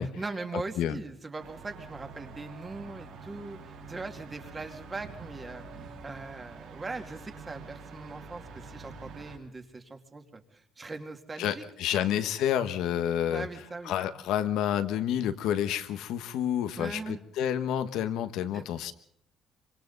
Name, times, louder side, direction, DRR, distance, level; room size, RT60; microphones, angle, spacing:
voice 1, 0.2-11.6 11.9-12.1 13.3-13.9 16.8-17.2 18.5-18.6, right 3 dB, 20° right, 5 dB, 2.3 m, -40 dB
sound 1, 1.4-9.4, right 4 dB, 85° right, 5.9 m, -46 dB
voice 2, 11.4-13.5 13.8-18.9, left 10 dB, 80° left, 10 dB, 1.4 m, -29 dB
26.5 x 24.5 x 4.1 m, 0.63 s
cardioid pair, 135°, 0 cm